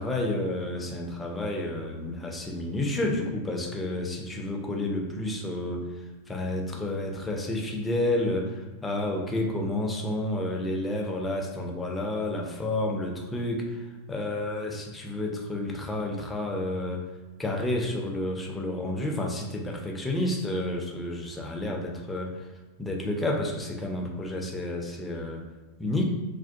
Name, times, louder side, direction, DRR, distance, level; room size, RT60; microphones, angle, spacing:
voice 1, 0.0-5.9 6.3-17.1 17.4-22.4 22.8-25.4 25.8-26.1, left 1 dB, 10° left, 1 dB, 0.4 m, -30 dB
2.5 x 2.1 x 2.5 m, 1.2 s
figure-of-eight pair, 90°, 0 cm